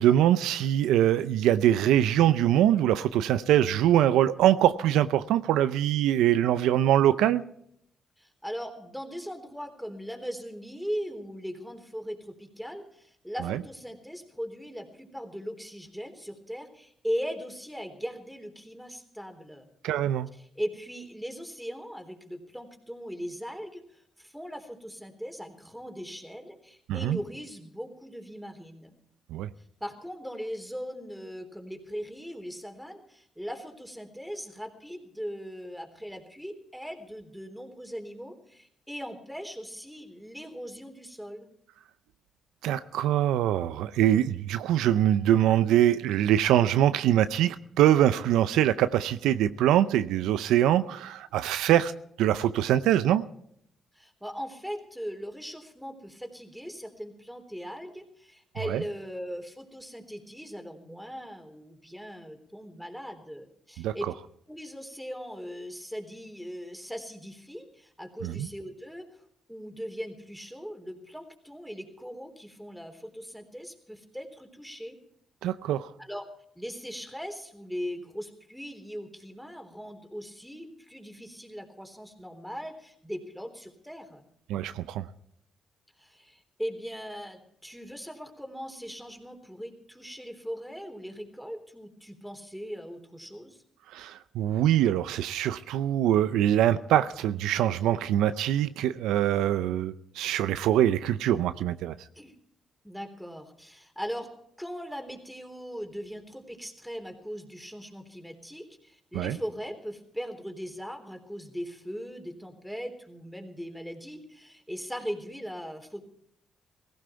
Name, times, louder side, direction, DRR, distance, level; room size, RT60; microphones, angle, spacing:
voice 1, 0.0-7.4 13.4-13.6 19.8-20.3 26.9-27.2 29.3-29.5 42.6-51.9 52.2-53.2 58.7-58.8 63.8-63.9 68.2-68.5 75.4-75.9 84.5-85.1 93.9-101.9 109.1-109.4, right 11 dB, 85° right, 0.6 m, -23 dB
voice 2, 8.2-19.7 20.4-28.9 29.8-41.5 53.9-64.1 64.5-69.2 69.5-75.0 76.0-76.2 76.6-84.2 86.0-93.6 102.2-102.3 102.8-104.3 104.6-116.0, equal, ahead, 3.6 m, -39 dB
17.5 x 15.0 x 4.5 m
supercardioid pair, 60°, 0 cm